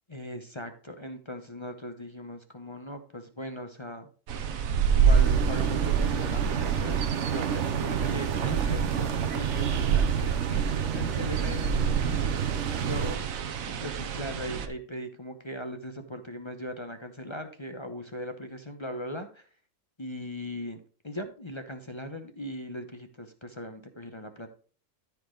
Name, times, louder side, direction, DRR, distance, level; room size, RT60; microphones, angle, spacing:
voice 1, 0.1-4.1 4.9-12.3 12.8-13.2 13.7-19.5 20.0-24.5, left 1 dB, 25° left, 6 dB, 0.9 m, -39 dB
sound 1, 4.3-14.7, right 6 dB, 85° right, 1.3 m, -28 dB
sound 2, 5.1-13.2, right 8 dB, 65° right, 1.2 m, -31 dB
13.5 x 5.2 x 3.8 m, 0.41 s
omnidirectional pair, 1.4 m